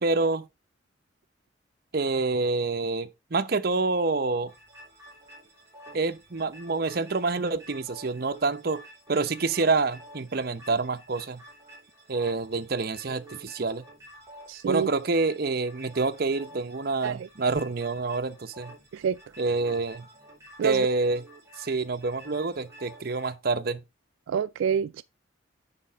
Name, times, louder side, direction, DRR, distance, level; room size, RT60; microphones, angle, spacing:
voice 1, 0.0-0.5 1.9-4.5 5.9-8.8 9.1-11.4 12.1-13.9 14.6-18.7 19.4-20.1 20.6-21.2 21.6-23.8, right 3 dB, 50° right, 0.8 m, -27 dB
sound 1, 4.5-23.3, right 1 dB, 15° right, 3.7 m, -50 dB
voice 2, 14.5-14.9 17.0-17.3 18.9-19.2 20.6-20.9 24.3-25.0, right 7 dB, 90° right, 0.3 m, -27 dB
8.7 x 5.8 x 3.5 m
head